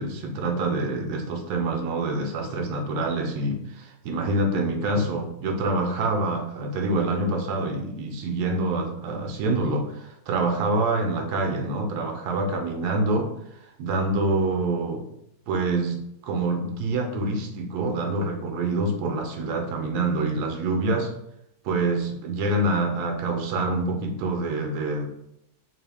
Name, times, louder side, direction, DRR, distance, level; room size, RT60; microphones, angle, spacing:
voice 1, 0.0-13.3 13.8-15.1 15.5-21.1 21.6-25.1, right 2 dB, 90° right, 4 dB, 1.2 m, -26 dB
3.1 x 2.6 x 3.3 m, 0.80 s
omnidirectional pair, 1.6 m